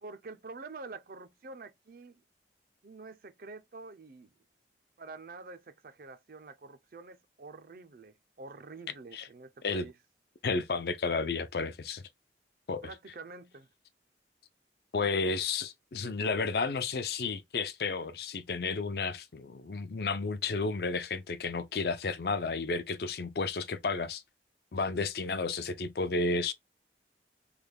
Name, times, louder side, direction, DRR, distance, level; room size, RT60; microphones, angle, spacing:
voice 1, 0.0-2.2 2.8-4.3 5.0-9.9 12.8-13.7, right 3 dB, 50° right, 0.5 m, -47 dB
voice 2, 10.4-12.0 12.7-12.8 14.9-24.2 24.7-26.5, left 4 dB, 60° left, 0.5 m, -32 dB
3.3 x 2.2 x 3.3 m
head